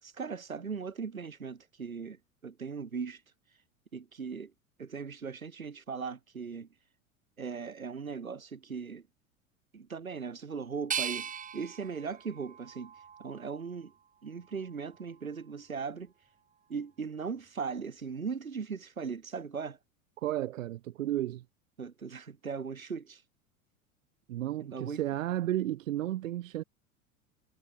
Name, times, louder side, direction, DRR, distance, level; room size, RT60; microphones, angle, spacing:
voice 1, 0.0-3.2 3.9-4.5 4.8-6.7 7.4-9.1 9.7-12.9 13.2-13.9 14.2-16.1 16.7-19.8 21.8-23.2 24.6-25.0, right 5 dB, 85° right, 5.4 m, -38 dB
sound 1, 10.9-13.8 14.4-15.2, right 7 dB, 20° right, 1.2 m, -40 dB
voice 2, 20.2-21.4 24.3-26.6, right 13 dB, 70° right, 2.0 m, -33 dB
figure-of-eight pair, 80°, 41 cm